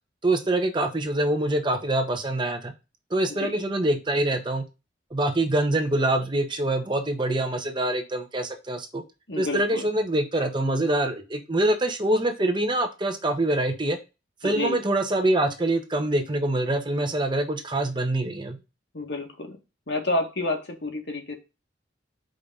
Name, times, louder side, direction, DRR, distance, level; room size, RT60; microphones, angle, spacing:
voice 1, 0.2-2.7 3.1-4.6 5.1-9.0 9.4-14.0 14.4-18.6, right 1 dB, 25° right, 6 dB, 0.9 m, -25 dB
voice 2, 9.3-9.9 14.4-14.8 18.9-19.6 19.9-21.4, left 2 dB, 65° left, 3 dB, 1.7 m, -29 dB
5.1 x 3.8 x 5.4 m, 0.27 s
head